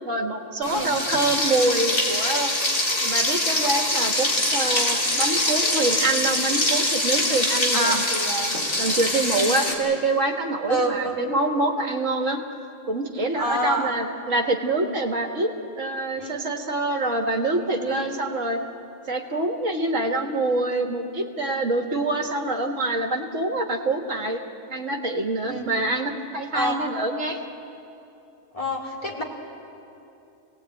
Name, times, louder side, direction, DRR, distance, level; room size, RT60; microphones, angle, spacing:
voice 1, 0.0-2.6 3.0-12.4 12.9-18.6 19.1-24.4 24.7-27.4, right 2 dB, 70° right, 4 dB, 1.9 m, -25 dB
Frying (food), 0.6-9.7, left 1 dB, 80° left, 3.7 m, -24 dB
voice 2, 10.7-11.1 13.4-13.9 16.2-16.4 17.9-18.1 25.5-25.9 26.5-26.8 28.5-29.2, equal, 25° left, -1 dB, 3.0 m, -27 dB
27.5 x 18.0 x 9.0 m, 2.8 s
omnidirectional pair, 1.4 m